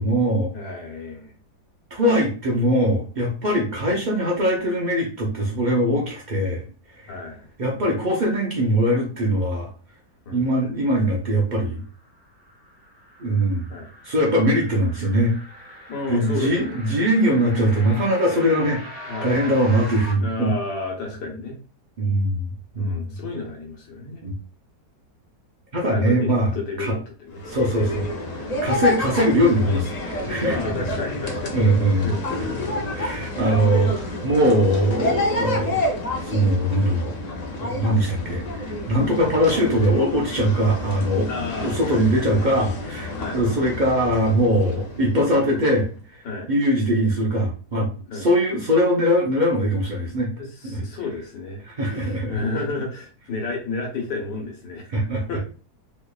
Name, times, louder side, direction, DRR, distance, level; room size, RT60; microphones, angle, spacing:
voice 1, 0.0-0.5 1.9-6.6 7.0-7.1 7.6-9.7 10.3-11.8 13.2-13.7 14.0-15.3 16.1-18.8 19.2-20.5 22.0-22.5 22.7-23.1 24.2-24.3 25.7-26.5 26.8-26.9 27.5-28.0 28.3-30.9 31.5-32.1 32.4-32.5 32.9-35.8 36.2-37.1 37.6-41.3 41.6-46.2 46.5-47.9 48.1-50.3 50.7-50.8 51.7-52.4 54.9-55.2, equal, 80° right, -2 dB, 0.4 m, -21 dB
voice 2, 0.5-1.3 3.7-4.0 7.1-7.5 10.2-10.6 13.7-13.9 15.9-16.8 17.3-17.4 19.0-19.6 20.2-21.6 22.8-24.3 25.9-27.5 27.8-28.1 28.6-29.1 30.5-32.8 41.3-42.0 43.2-43.4 46.2-46.5 48.1-48.3 50.3-54.9 55.3-55.4, left 3 dB, 85° left, 1 dB, 1.6 m, -32 dB
sound 1, 11.8-20.1, equal, 5° right, 0.9 m, -41 dB
sound 2, 27.3-45.8, left 2 dB, 60° left, 0.4 m, -29 dB
3.5 x 3.1 x 2.3 m, 0.39 s
omnidirectional pair, 1.8 m